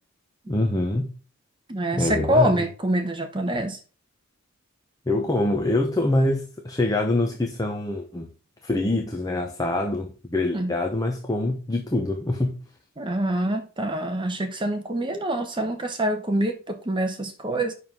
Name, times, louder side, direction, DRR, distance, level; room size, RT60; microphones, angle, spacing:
voice 1, 0.5-1.1 1.9-2.5 3.5-3.6 5.1-8.3 8.6-12.6, left 2 dB, 15° left, 1.0 m, -25 dB
voice 2, 1.7-3.8 10.5-10.7 13.0-17.7, right 1 dB, 25° right, 1.0 m, -25 dB
9.4 x 6.3 x 3.8 m
head